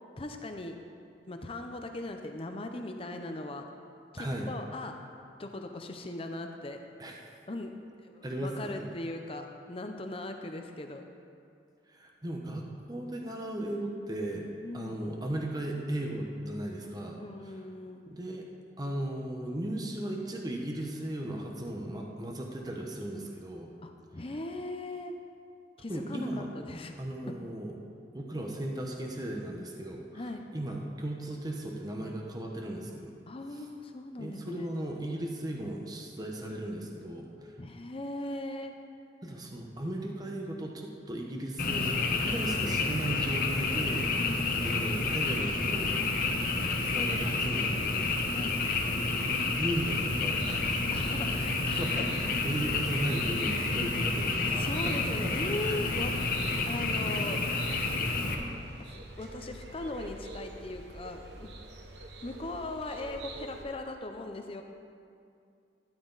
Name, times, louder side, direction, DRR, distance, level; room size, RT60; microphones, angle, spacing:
voice 1, 0.2-0.8 1.2-3.7 4.1-5.0 5.4-6.8 7.5-7.7 8.0-11.1 14.6-15.0 17.2-18.0 23.8-25.1 25.8-26.9 27.3-27.4 30.1-30.4 33.3-34.7 37.6-38.7 44.2-44.5 48.3-48.6 50.9-52.1 54.5-56.1 56.7-57.4 58.8-61.5 62.2-64.6, left 2 dB, 30° left, 4 dB, 0.6 m, -39 dB
voice 2, 4.2-4.5 7.0-7.2 8.2-8.9 11.9-14.5 14.7-17.2 17.4-17.5 18.1-18.5 18.8-23.7 25.9-26.5 27.0-27.7 28.1-30.2 30.5-33.1 34.2-37.5 39.2-44.1 44.6-46.0 46.8-48.3 49.2-50.9 51.6-55.0 55.2-55.3 55.6-55.8, right 1 dB, 20° right, 1 dB, 1.0 m, -36 dB
Frog, 41.6-58.3, left 3 dB, 50° left, 1.1 m, -30 dB
sound 1, 50.3-63.6, right 2 dB, 70° right, 1.2 m, -46 dB
13.0 x 10.0 x 4.0 m, 2.4 s
head